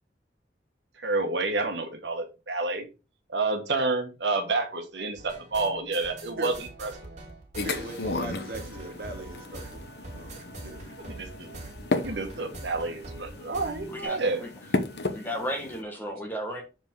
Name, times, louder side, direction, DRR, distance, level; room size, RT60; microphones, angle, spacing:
voice 1, 1.0-2.9 3.3-6.5 6.8-6.9 11.1-11.6 11.9-14.4, right 3 dB, 85° right, 1.4 m, -29 dB
sound 1, 5.2-14.1, right 2 dB, 40° right, 2.9 m, -43 dB
voice 2, 6.4-6.7 7.6-10.9, right 2 dB, 55° right, 2.1 m, -40 dB
sound 2, 7.6-15.8, left 2 dB, 70° left, 0.9 m, -35 dB
voice 3, 13.9-14.5 15.1-16.6, equal, 10° left, 1.5 m, -34 dB
7.1 x 5.1 x 3.8 m
head